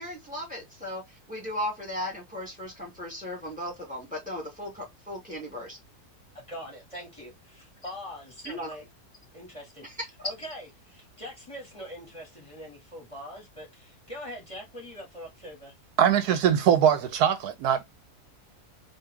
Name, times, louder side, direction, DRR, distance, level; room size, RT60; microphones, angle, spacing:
voice 1, 0.0-5.8 8.4-8.7 9.8-9.9 10.2-10.3, left 1 dB, 5° right, 2.5 m, -36 dB
voice 2, 6.3-8.8 9.3-15.7, equal, 20° left, 2.4 m, -43 dB
voice 3, 16.0-17.8, right 9 dB, 75° right, 1.1 m, -22 dB
4.4 x 2.8 x 3.5 m
omnidirectional pair, 1.7 m